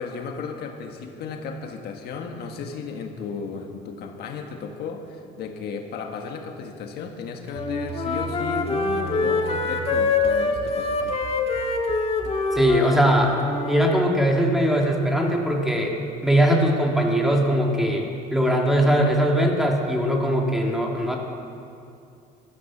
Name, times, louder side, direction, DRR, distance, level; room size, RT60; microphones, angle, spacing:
voice 1, 0.0-11.2, left 5 dB, 70° left, 3 dB, 1.6 m, -34 dB
Wind instrument woodwind instrument, 7.5-13.9, left 4 dB, 35° left, 1.8 m, -25 dB
sound 1, 7.6-12.9, right 7 dB, 40° right, 3.4 m, -38 dB
voice 2, 12.5-13.3 13.7-16.0 16.2-21.2, equal, ahead, 0 dB, 2.3 m, -20 dB
15.0 x 13.0 x 7.3 m, 2.5 s
cardioid pair, 110°, 17 cm